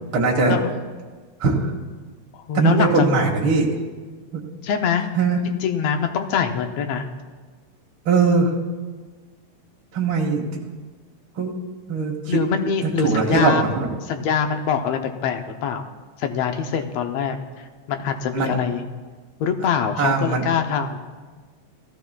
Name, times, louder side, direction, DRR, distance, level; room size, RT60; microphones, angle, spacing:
voice 1, 0.1-0.6 1.4-1.7 2.5-3.7 4.3-4.4 5.2-5.4 8.1-8.5 9.9-10.4 11.4-11.6 11.9-12.4 12.8-13.9 18.3-18.6 20.0-20.4, right 4 dB, 50° right, -2 dB, 1.8 m, -20 dB
voice 2, 2.3-3.1 4.6-5.1 5.5-7.1 12.3-13.7 14.0-15.8 16.2-18.8 19.4-21.0, left 7 dB, 70° left, 6 dB, 1.7 m, -24 dB
18.0 x 14.5 x 2.3 m, 1.4 s
omnidirectional pair, 3.5 m